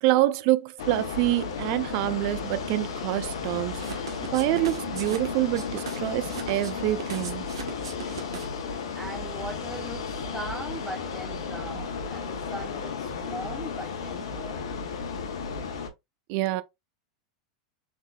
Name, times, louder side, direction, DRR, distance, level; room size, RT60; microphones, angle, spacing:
voice 1, 0.0-3.8 4.3-7.4 16.3-16.6, right 17 dB, 50° right, 0.4 m, -26 dB
sound 1, 0.8-15.9, left 5 dB, 70° left, 0.8 m, -34 dB
sound 2, 3.8-8.7, right 7 dB, 75° right, 0.9 m, -39 dB
voice 2, 8.9-14.8, right 1 dB, 5° right, 0.7 m, -40 dB
3.6 x 3.3 x 2.2 m
figure-of-eight pair, 90°, 3 cm